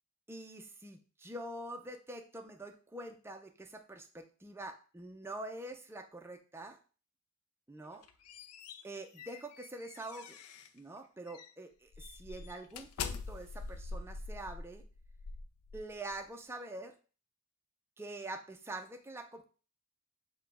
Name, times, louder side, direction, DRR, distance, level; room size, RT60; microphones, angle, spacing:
voice 1, 0.3-6.8 7.7-8.1 8.8-10.4 10.7-14.8 15.7-16.9 18.0-19.4, right 2 dB, 10° right, 4 dB, 0.4 m, -45 dB
sound 1, 7.8-10.8 11.3-11.5 11.9-16.2, left 4 dB, 85° left, 0.4 m, -44 dB
4.8 x 2.2 x 4.7 m, 0.36 s
head